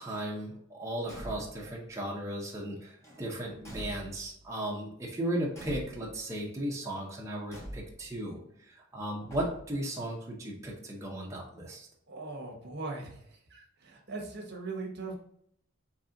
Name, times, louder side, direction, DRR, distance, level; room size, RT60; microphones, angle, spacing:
voice 1, 0.0-8.4 8.7-11.9, right 1 dB, 15° right, -3 dB, 0.7 m, -36 dB
Car / Truck / Slam, 1.0-1.7 3.0-4.4 5.5-6.3 7.5-8.2 9.3-9.9, equal, 15° left, 1.3 m, -45 dB
voice 2, 12.1-15.2, right 3 dB, 55° right, 1 dB, 1.0 m, -40 dB
4.1 x 3.3 x 3.8 m, 0.71 s
head